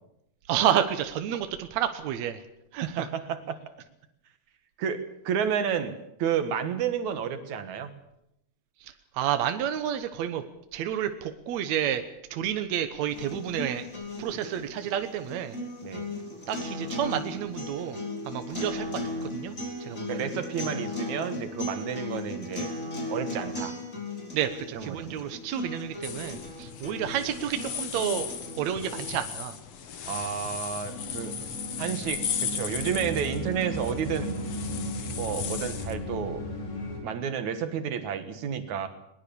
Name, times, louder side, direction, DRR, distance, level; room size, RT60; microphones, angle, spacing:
voice 1, 0.5-2.4 2.7-3.1 8.8-10.4 10.7-12.0 12.3-13.8 14.2-15.6 16.5-18.0 18.2-19.0 19.3-19.5 19.8-20.3 24.3-28.3 28.6-29.6, right 10 dB, 75° right, 9 dB, 1.6 m, -30 dB
voice 2, 2.8-3.6 4.8-7.9 15.8-16.1 18.6-18.7 20.1-22.7 23.1-23.8 24.7-25.3 30.1-31.3 31.8-34.4 35.1-36.5 37.0-38.9, right 8 dB, 55° right, 9 dB, 2.3 m, -31 dB
sound 1, 13.1-29.1, left 2 dB, 20° left, 4.5 m, -37 dB
sound 2, 26.0-35.9, left 8 dB, 60° left, 1.7 m, -37 dB
sound 3, 30.9-37.0, left 1 dB, 90° left, 6.8 m, -35 dB
21.0 x 20.5 x 7.0 m, 0.81 s
omnidirectional pair, 4.9 m